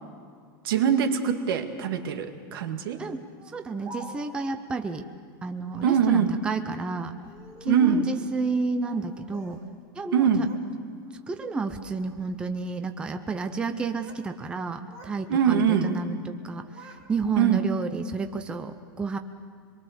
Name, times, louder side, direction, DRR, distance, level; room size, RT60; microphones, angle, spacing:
voice 1, 0.6-3.0 5.8-6.3 7.6-8.0 10.1-10.5 15.3-15.9 17.4-17.6, right 8 dB, 80° right, 6 dB, 2.1 m, -23 dB
voice 2, 3.0-5.1 5.4-7.2 7.6-9.6 9.9-10.5 11.3-19.2, right 4 dB, 10° right, 7 dB, 0.6 m, -31 dB
Speech, 3.4-4.5 5.6-6.1 7.1-8.1 8.8-9.6 9.9-10.7 11.1-11.4 12.1-12.4 13.6-14.3 14.6-15.2 15.5-16.1 16.4-17.6, equal, 25° right, 3.4 m, -48 dB
25.5 x 22.5 x 6.8 m, 2.2 s
supercardioid pair, 175°, 12 cm